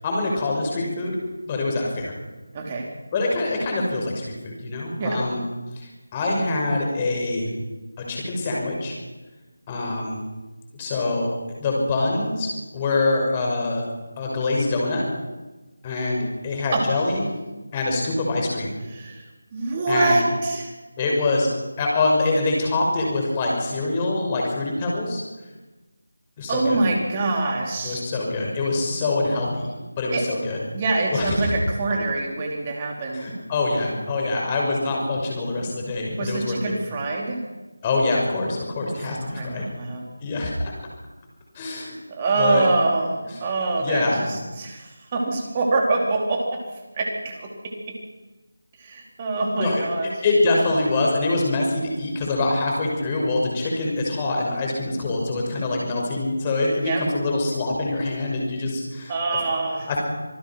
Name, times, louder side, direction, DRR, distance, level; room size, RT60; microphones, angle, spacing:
voice 1, 0.0-1.2 1.5-2.1 3.1-5.4 5.8-7.5 8.0-8.9 9.7-10.2 10.7-11.3 11.6-13.8 14.2-15.0 15.8-17.3 17.7-18.8 19.9-20.2 21.0-21.5 21.8-25.2 26.4-26.8 27.8-29.7 30.0-30.6 31.1-31.5 33.1-36.7 37.8-39.7 40.2-40.5 41.5-41.9 42.4-42.7 43.2-43.3 43.8-44.2 49.6-49.9 50.2-59.1 59.9-60.0, left 2 dB, 20° left, -1 dB, 6.0 m, -24 dB
voice 2, 2.5-2.9 5.0-5.2 16.7-16.9 18.9-20.7 26.5-28.0 30.1-30.2 30.7-33.3 36.2-37.4 38.9-39.0 39.3-40.0 42.1-43.1 43.4-46.6 46.9-48.0 48.8-50.1 56.8-57.0 59.1-59.9, right 3 dB, 25° right, 0 dB, 4.3 m, -25 dB
26.5 x 19.5 x 6.1 m, 1.2 s
figure-of-eight pair, 165°, 0 cm